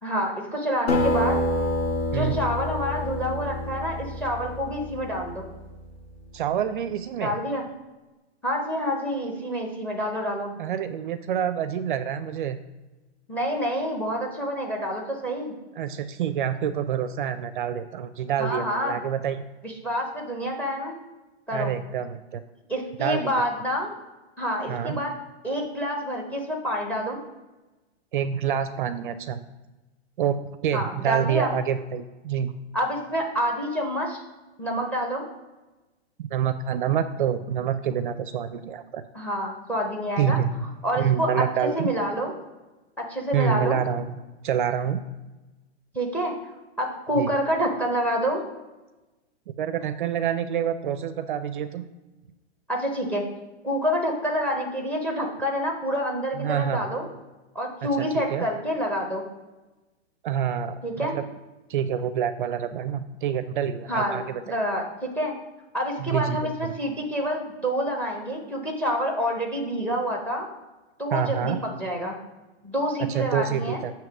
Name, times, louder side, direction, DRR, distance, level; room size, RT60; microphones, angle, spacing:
voice 1, 0.0-1.4 2.1-5.5 7.2-7.6 8.4-10.5 13.3-15.5 18.4-19.0 19.6-21.0 21.5-21.7 22.7-23.9 24.4-25.1 25.4-27.2 30.7-31.5 32.7-34.2 34.6-35.2 39.1-40.4 40.8-41.3 41.6-42.3 43.0-43.8 45.9-46.3 46.8-48.4 52.7-53.2 53.6-57.1 57.5-59.2 60.8-61.2 63.9-65.3 65.7-70.5 71.0-72.2 72.6-73.8, equal, 5° left, 2 dB, 0.7 m, -27 dB
Acoustic guitar, 0.9-5.7, left 1 dB, 70° left, 1.9 m, -28 dB
voice 2, 6.3-7.3 10.6-12.6 15.8-19.4 21.5-22.4 23.0-23.4 24.7-25.0 28.1-29.4 30.2-30.4 30.6-32.6 36.2-39.0 40.2-40.5 41.0-41.9 43.3-44.2 44.4-45.0 47.2-47.3 49.6-51.9 56.3-56.9 58.0-58.5 60.2-61.2 61.7-64.6 66.0-66.7 71.1-71.6 73.0-73.9, right 9 dB, 50° right, 11 dB, 0.4 m, -27 dB
7.3 x 2.9 x 5.9 m, 1.1 s
hypercardioid pair, 160°, 33 cm